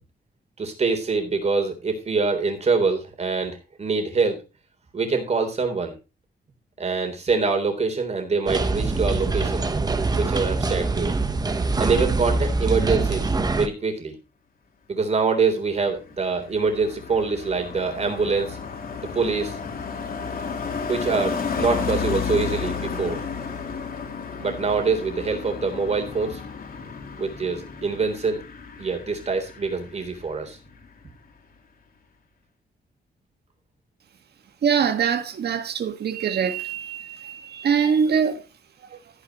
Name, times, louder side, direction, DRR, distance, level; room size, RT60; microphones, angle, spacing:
voice 1, 0.6-4.4 4.9-5.9 6.8-9.7 10.2-11.1 11.8-14.1 14.9-18.6 19.1-19.6 20.9-23.2 24.4-26.4 27.2-28.4 28.8-30.6, right 4 dB, 40° right, 3.6 m, -25 dB
sound 1, 8.5-13.7, right 3 dB, 20° right, 1.0 m, -24 dB
Car passing by, 15.7-30.5 30.7-31.1, left 5 dB, 55° left, 3.2 m, -32 dB
voice 2, 34.6-38.4, right 7 dB, 70° right, 1.8 m, -23 dB
14.5 x 9.7 x 3.1 m
wide cardioid pair, 165°, 18 cm